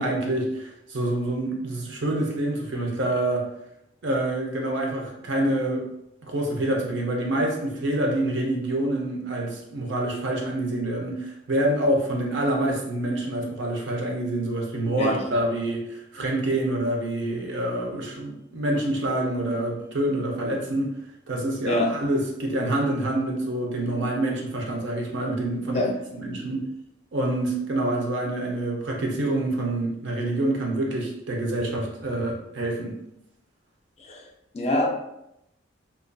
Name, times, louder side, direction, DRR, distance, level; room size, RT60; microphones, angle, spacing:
voice 1, 0.0-3.5 4.0-5.8 6.2-20.9 21.3-26.7 27.1-32.9, right 1 dB, 70° right, 0 dB, 0.6 m, -26 dB
voice 2, 34.5-34.9, left 1 dB, 35° left, 2 dB, 0.3 m, -24 dB
2.5 x 2.4 x 2.2 m, 0.82 s
head